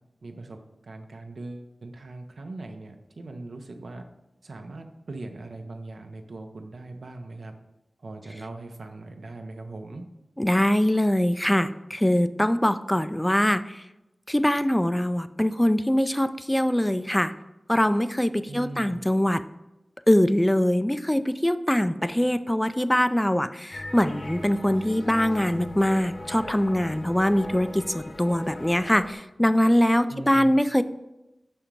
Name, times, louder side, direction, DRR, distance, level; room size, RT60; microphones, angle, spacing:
voice 1, 0.2-4.0 4.4-7.6 8.0-10.0 18.5-19.0 30.1-30.5, right 2 dB, 85° right, 5 dB, 0.7 m, -40 dB
voice 2, 10.4-13.6 14.3-17.3 17.7-19.4 20.1-30.8, equal, 10° left, 12 dB, 0.3 m, -23 dB
sound 1, 23.7-29.1, left 2 dB, 65° left, 0.7 m, -39 dB
6.0 x 4.4 x 5.1 m, 0.94 s
wide cardioid pair, 70°, 0 cm